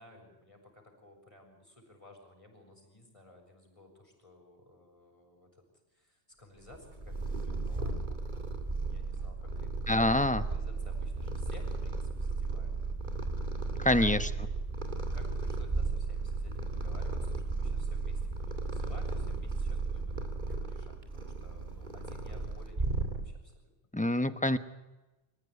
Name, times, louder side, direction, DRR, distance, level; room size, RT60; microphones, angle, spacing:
voice 1, 0.0-5.7 5.9-8.4 8.9-12.7 13.8-14.5 14.9-23.7, left 1 dB, 30° left, 2 dB, 7.4 m, -55 dB
Purr, 6.7-23.6, right 3 dB, 45° right, 2.5 m, -35 dB
voice 2, 9.9-10.4 13.8-14.3 23.9-24.6, left 1 dB, 5° left, 11 dB, 1.0 m, -26 dB
26.5 x 15.5 x 9.8 m, 1.1 s
omnidirectional pair, 1.1 m